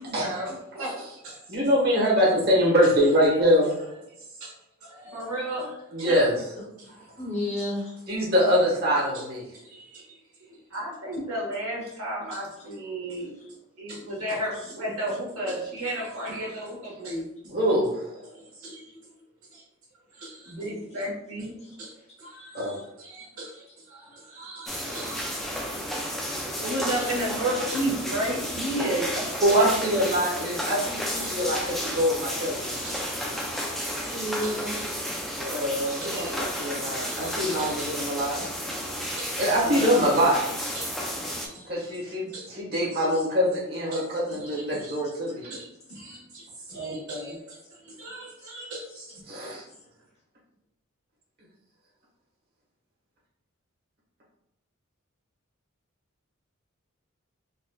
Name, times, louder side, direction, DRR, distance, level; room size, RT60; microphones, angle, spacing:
voice 1, 0.0-1.8 4.2-4.5 4.8-6.1 6.8-7.2 9.1-9.3 9.5-13.3 13.8-17.6 18.3-19.0 19.5-19.6 20.1-21.9 22.2-25.9 26.6-29.7 30.0-30.3 30.6-30.7 31.2-31.4 31.9-32.0 32.7-38.3 38.8-39.3 39.6-40.1 40.7-41.9 42.3-42.4 42.8-43.1 43.7-44.0 44.3-45.0 45.4-49.2, right 1 dB, 90° right, -4 dB, 1.4 m, -35 dB
voice 2, 1.5-3.7 5.9-6.4 8.1-9.4 17.5-18.2 22.5-22.8 29.4-32.7 35.4-38.4 39.4-40.4 41.6-45.5 49.3-49.6, equal, 45° right, -5 dB, 1.3 m, -24 dB
voice 3, 6.5-8.0 13.3-13.5 21.6-21.8 34.1-34.8 40.4-40.9 42.2-42.6 43.1-43.2 44.8-44.9 48.4-48.5, left 1 dB, 30° left, -5 dB, 0.9 m, -35 dB
sound 1, 24.7-41.5, equal, ahead, 0.3 m, -32 dB
4.1 x 2.5 x 2.3 m, 0.84 s
head